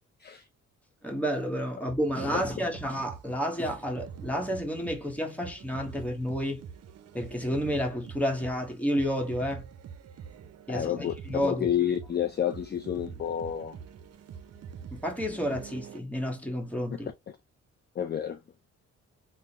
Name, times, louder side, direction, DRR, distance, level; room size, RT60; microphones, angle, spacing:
voice 1, 1.0-6.6 7.1-9.6 10.7-11.7 14.9-17.1, equal, 5° left, 1.2 m, -30 dB
sound 1, 1.9-16.0, right 7 dB, 55° right, 0.6 m, -45 dB
voice 2, 10.7-13.8 18.0-18.4, left 9 dB, 35° left, 0.4 m, -30 dB
3.6 x 2.1 x 2.8 m
cardioid pair, 90°, 30 cm